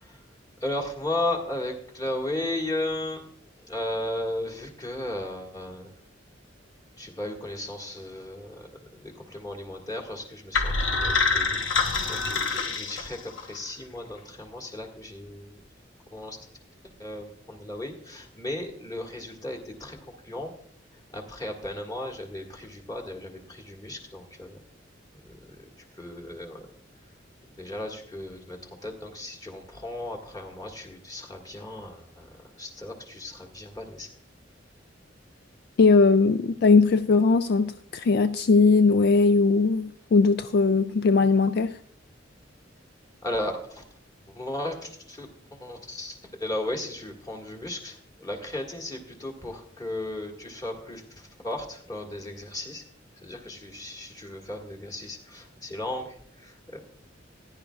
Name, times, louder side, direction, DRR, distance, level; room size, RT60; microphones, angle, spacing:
voice 1, 0.6-3.2 3.6-5.9 7.0-15.6 16.1-16.4 17.0-20.5 21.1-24.6 25.2-25.6 26.0-26.7 27.6-34.1 43.2-43.8 44.3-52.8 53.2-56.8, left 1 dB, 20° left, 1.7 m, -35 dB
sound 1, 10.5-13.6, left 4 dB, 80° left, 1.0 m, -26 dB
voice 2, 35.8-41.7, left 4 dB, 55° left, 0.3 m, -20 dB
15.5 x 10.5 x 2.3 m
head